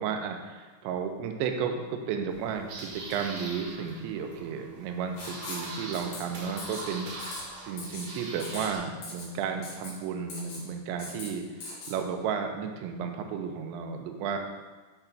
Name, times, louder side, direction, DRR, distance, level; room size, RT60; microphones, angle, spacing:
voice 1, 0.0-14.4, right 6 dB, 80° right, 4 dB, 2.8 m, -33 dB
sound 1, 2.3-8.8, right 2 dB, 60° right, 2.3 m, -42 dB
Writing, 5.2-5.7 5.9-6.2 6.6-6.9 7.2-7.4 7.8-8.1 8.4-8.7 9.0-9.3 9.6-9.9 10.3-10.6 11.0-11.3 11.6-11.9, left 3 dB, 70° left, 1.9 m, -40 dB
7.9 x 3.6 x 5.8 m, 1.3 s
omnidirectional pair, 5.4 m